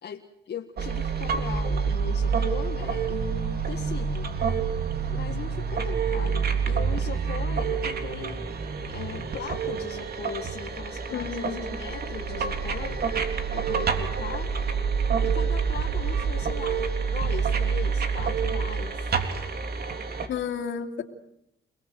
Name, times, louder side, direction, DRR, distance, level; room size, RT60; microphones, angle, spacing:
voice 1, 0.0-4.3 5.1-8.4 8.9-13.0 13.5-14.5 15.2-19.1, left 7 dB, 55° left, 3 dB, 1.8 m, -39 dB
sound 1, 0.8-20.3, right 6 dB, 50° right, 3.5 m, -27 dB
voice 2, 11.1-11.6 20.3-21.0, left 7 dB, 70° left, 2 dB, 3.1 m, -31 dB
28.5 x 20.0 x 8.0 m, 0.83 s
cardioid pair, 90°, 20 cm